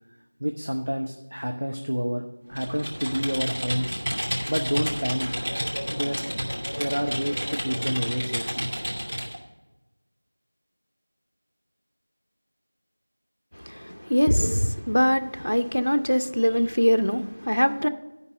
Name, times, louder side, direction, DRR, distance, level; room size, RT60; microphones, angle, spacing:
voice 1, 0.4-2.2 2.5-4.0 4.5-5.3 5.9-6.2 6.8-8.7, equal, 35° right, 4 dB, 0.5 m, -28 dB
Computer keyboard, 2.5-9.4, equal, 15° right, 0.9 m, -31 dB
voice 2, 13.7-17.9, equal, 70° left, 9 dB, 0.6 m, -23 dB
11.0 x 5.4 x 6.2 m, 1.1 s
figure-of-eight pair, 180°, 0 cm